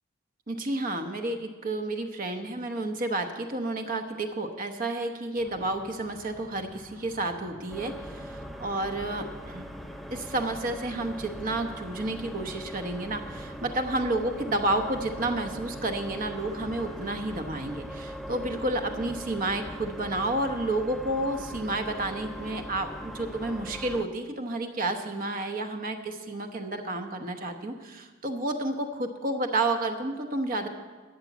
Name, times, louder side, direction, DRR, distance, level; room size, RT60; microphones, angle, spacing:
voice 1, 0.5-9.6 10.1-30.7, right 2 dB, 40° right, 5 dB, 1.0 m, -31 dB
sound 1, 5.4-17.8, equal, 75° right, 3.3 m, -51 dB
sound 2, 7.7-24.0, equal, ahead, 0.4 m, -41 dB
12.5 x 7.0 x 9.2 m, 1.4 s
head